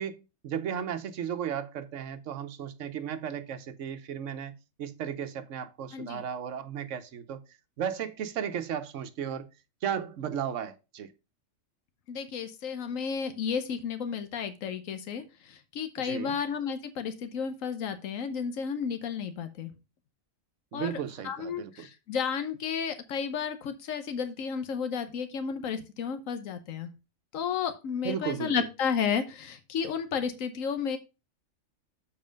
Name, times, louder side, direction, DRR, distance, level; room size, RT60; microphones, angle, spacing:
voice 1, 0.0-4.5 4.8-7.4 7.8-9.5 9.8-11.1 16.0-16.4 20.7-21.9 28.0-28.7, right 8 dB, 70° right, 1.2 m, -35 dB
voice 2, 12.1-19.7 20.7-20.9 21.2-26.9 27.3-31.0, left 6 dB, 90° left, 1.2 m, -32 dB
7.3 x 4.8 x 5.1 m
omnidirectional pair, 1.3 m